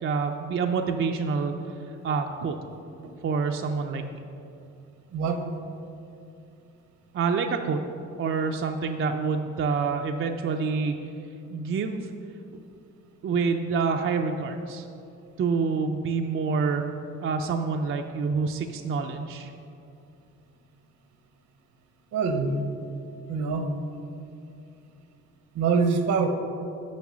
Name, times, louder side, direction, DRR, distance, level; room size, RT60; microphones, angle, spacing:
voice 1, 0.0-1.5 1.9-2.6 3.2-4.2 7.1-7.8 8.2-11.0 11.5-12.1 13.2-14.9 15.4-16.8 17.2-19.5, right 5 dB, 45° right, 4 dB, 0.5 m, -27 dB
voice 2, 5.1-5.4 22.1-22.6 23.3-23.7 25.5-26.3, right 5 dB, 70° right, 6 dB, 0.9 m, -24 dB
7.3 x 5.2 x 6.1 m, 2.6 s
cardioid pair, 90°, 30 cm